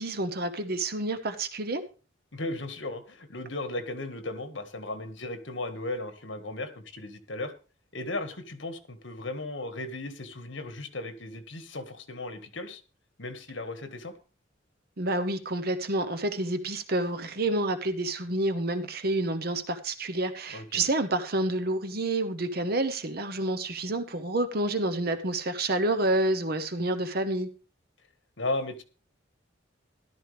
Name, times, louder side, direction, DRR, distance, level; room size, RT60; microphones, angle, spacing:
voice 1, 0.0-1.8 15.0-27.5, right 2 dB, 50° right, 9 dB, 1.0 m, -29 dB
voice 2, 2.3-7.5 7.9-12.8 13.2-14.1 20.5-20.9 28.4-28.8, left 2 dB, 75° left, 9 dB, 1.7 m, -36 dB
13.5 x 12.0 x 3.4 m, 0.36 s
head